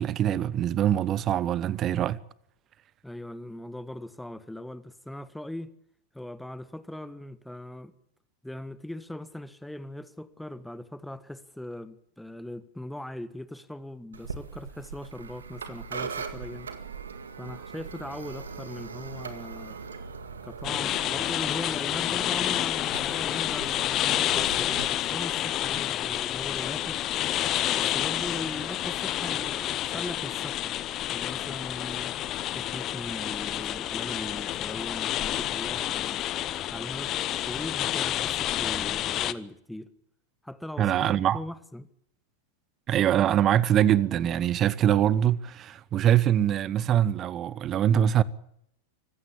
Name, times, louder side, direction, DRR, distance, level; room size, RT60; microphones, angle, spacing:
voice 1, 0.0-2.2 40.8-41.4 42.9-48.2, right 10 dB, 30° right, 1.1 m, -23 dB
voice 2, 3.0-5.7 6.1-7.9 8.4-16.7 17.4-19.8 20.4-27.0 27.7-30.7 31.1-32.1 32.5-36.2 36.7-37.1 37.4-39.9 40.4-41.9, left 1 dB, 5° left, 1.5 m, -40 dB
sound 1, 14.1-24.8, right 5 dB, 70° right, 2.0 m, -40 dB
sound 2, 20.6-39.3, left 13 dB, 35° left, 0.9 m, -29 dB
25.0 x 15.5 x 8.5 m
figure-of-eight pair, 90°, 0 cm